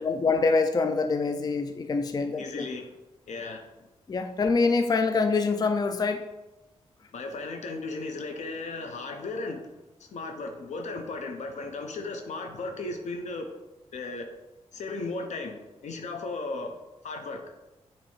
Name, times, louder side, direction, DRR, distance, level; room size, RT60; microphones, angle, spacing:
voice 1, 0.0-2.7 4.1-6.3, left 4 dB, 35° left, 7 dB, 0.4 m, -25 dB
voice 2, 2.4-2.9 3.3-3.7 7.1-9.7 10.0-13.5 13.9-14.3 14.7-16.8 17.0-17.4, left 3 dB, 80° left, 5 dB, 0.9 m, -35 dB
7.4 x 3.0 x 4.5 m, 1.0 s
cardioid pair, 85°, 12 cm